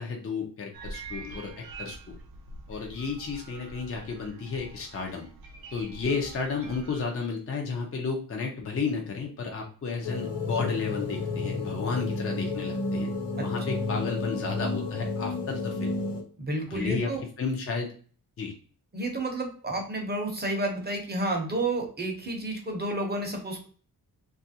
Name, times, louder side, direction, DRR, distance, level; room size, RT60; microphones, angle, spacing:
voice 1, 0.0-2.2 2.7-5.3 5.7-13.1 13.4-16.0 16.7-17.1 17.4-17.9 18.4-18.5, left 4 dB, 35° left, 1 dB, 0.5 m, -32 dB
sound 1, 0.7-7.0, right 3 dB, 65° right, 0.6 m, -45 dB
sound 2, 10.0-16.2, left 3 dB, 85° left, 0.8 m, -31 dB
voice 2, 16.4-17.2 18.9-23.7, right 2 dB, 25° right, 1 dB, 0.6 m, -30 dB
2.8 x 2.4 x 2.7 m, 0.42 s
wide cardioid pair, 160°, 40 cm